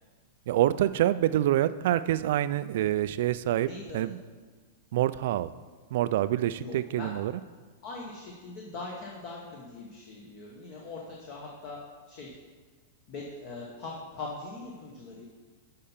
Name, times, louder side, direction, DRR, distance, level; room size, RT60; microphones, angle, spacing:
voice 1, 0.5-3.7 3.9-4.2 4.9-5.5 5.9-7.3, right 13 dB, 50° right, 15 dB, 0.3 m, -26 dB
voice 2, 3.6-4.0 6.6-7.1 7.8-12.4 13.1-15.2, left 3 dB, 35° left, -2 dB, 1.0 m, -41 dB
8.6 x 5.5 x 5.6 m, 1.4 s
supercardioid pair, 175°, 0 cm